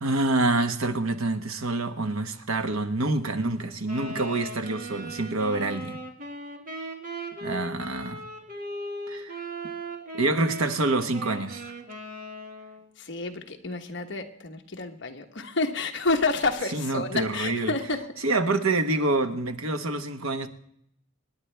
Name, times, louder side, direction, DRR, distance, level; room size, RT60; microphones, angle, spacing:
voice 1, 0.0-6.0 7.4-8.2 9.1-9.3 10.1-11.7 16.7-17.7 18.2-20.5, right 2 dB, 80° right, 7 dB, 1.2 m, -27 dB
Wind instrument woodwind instrument, 3.8-12.9, right 1 dB, 40° right, 1.9 m, -38 dB
voice 2, 13.0-18.1, left 3 dB, 55° left, 4 dB, 1.3 m, -29 dB
26.5 x 10.0 x 3.4 m, 0.70 s
head